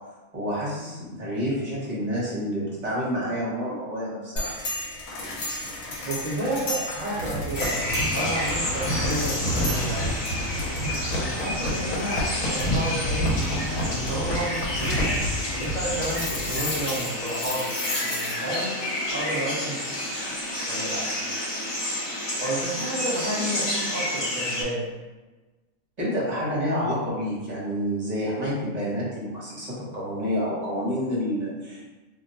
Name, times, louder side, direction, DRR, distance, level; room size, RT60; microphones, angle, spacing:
voice 1, 0.3-4.5 26.0-31.9, equal, 35° right, -7 dB, 0.9 m, -28 dB
sound 1, 4.4-18.6, left 1 dB, 75° left, 1.1 m, -30 dB
voice 2, 6.1-10.2 11.1-13.3 13.7-15.0 15.5-17.7 18.0-18.8 19.1-19.8 20.7-21.2 22.4-24.9, right 1 dB, 55° right, -7 dB, 0.5 m, -31 dB
sound 2, 7.5-24.6, left 1 dB, 30° left, 0.4 m, -30 dB
2.5 x 2.2 x 3.9 m, 1.2 s
omnidirectional pair, 1.5 m